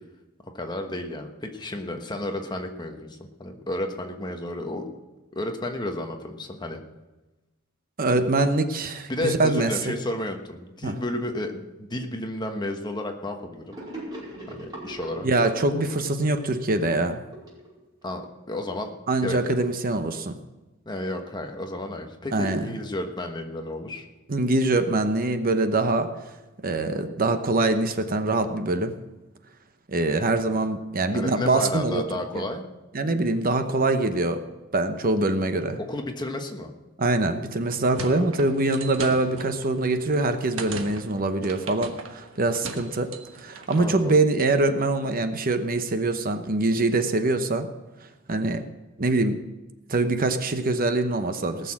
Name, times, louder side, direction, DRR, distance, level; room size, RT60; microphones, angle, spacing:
voice 1, 0.5-4.9 5.3-6.8 9.1-13.8 14.5-15.3 18.0-18.2 18.5-18.9 19.2-19.4 20.8-24.1 31.1-32.6 35.8-36.7 38.0-38.2 43.8-44.1, left 1 dB, 20° left, 4 dB, 1.3 m, -32 dB
voice 2, 8.0-9.9 10.8-11.0 15.2-17.2 19.1-20.4 22.3-22.7 24.3-26.1 26.6-28.9 29.9-32.0 32.3-32.4 32.9-34.4 34.7-35.8 37.0-43.1 43.4-47.7 48.3-48.6 49.0-49.4 49.9-51.7, right 2 dB, 45° right, 8 dB, 0.9 m, -24 dB
Gurgling / Sink (filling or washing), 13.7-18.2, right 1 dB, 20° right, 5.0 m, -40 dB
sound 1, 37.5-43.9, right 4 dB, 70° right, 1.3 m, -39 dB
18.5 x 6.8 x 7.4 m, 1.1 s
head